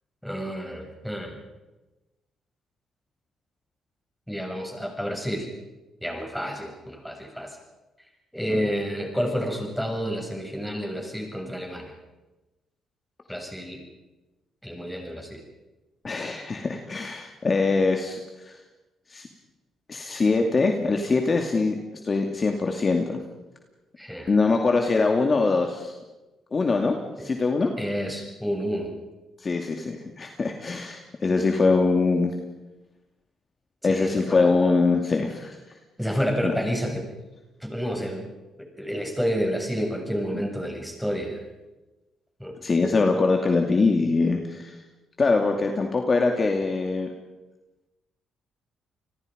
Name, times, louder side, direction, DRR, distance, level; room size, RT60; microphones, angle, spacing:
voice 1, 0.2-1.4 4.3-5.5 6.0-7.6 8.3-11.9 13.3-13.8 14.6-15.4 24.0-24.3 27.8-28.9 33.8-34.5 36.0-37.1 37.6-38.3 38.8-41.4 42.4-42.6, equal, ahead, 2 dB, 7.2 m, -29 dB
voice 2, 16.0-18.6 19.1-19.3 19.9-21.8 22.0-23.2 24.3-25.9 26.5-27.7 29.4-32.3 33.8-35.6 36.4-36.5 42.6-44.7 45.2-47.1, left 3 dB, 35° left, 3 dB, 2.5 m, -23 dB
29.5 x 20.5 x 5.3 m, 1.1 s
cardioid pair, 90°, 0 cm